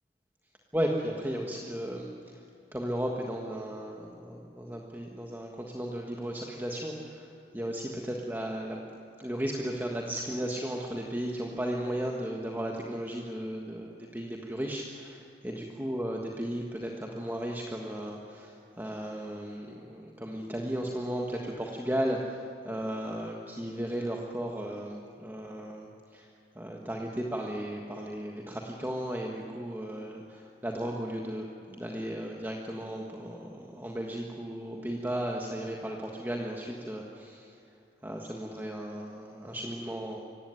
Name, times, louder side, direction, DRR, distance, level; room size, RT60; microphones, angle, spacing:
voice 1, 0.7-2.4 2.7-7.3 7.5-8.8 9.2-26.3 26.5-37.6 38.0-40.2, right 1 dB, 10° right, 0 dB, 1.6 m, -35 dB
26.0 x 15.5 x 9.6 m, 2.6 s
head